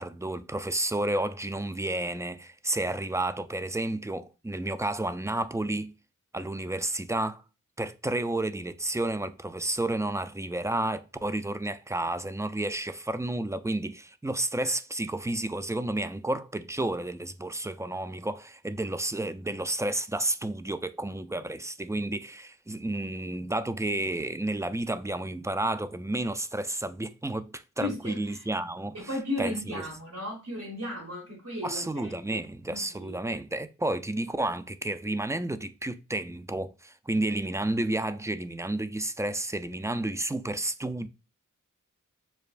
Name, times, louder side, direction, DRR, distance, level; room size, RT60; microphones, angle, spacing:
voice 1, 0.0-5.9 6.3-7.4 7.8-29.1 29.4-29.5 31.6-41.1, right 1 dB, 10° right, 0.3 m, -31 dB
voice 2, 27.8-28.4 28.9-32.1 32.7-33.1, left 1 dB, 70° right, 1.4 m, -35 dB
6.6 x 2.4 x 2.4 m
wide cardioid pair, 40°, 32 cm